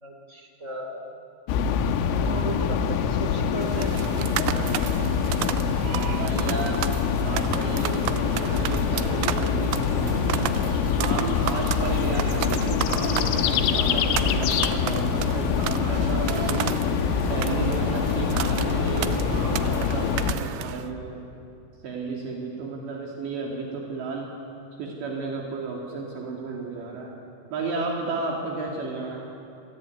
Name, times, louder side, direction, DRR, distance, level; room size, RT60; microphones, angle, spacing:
voice 1, 0.0-1.1 2.2-3.9, right 1 dB, 20° right, 2 dB, 2.5 m, -35 dB
sound 1, 1.5-20.3, left 6 dB, 90° left, 3.9 m, -25 dB
sound 2, 3.6-20.9, right 11 dB, 85° right, 2.4 m, -33 dB
voice 2, 6.0-10.5 11.0-16.7 17.2-21.2 21.8-24.3 24.8-27.1 27.5-29.3, right 3 dB, 65° right, -1 dB, 4.5 m, -33 dB
28.5 x 21.5 x 9.3 m, 2.6 s
omnidirectional pair, 5.8 m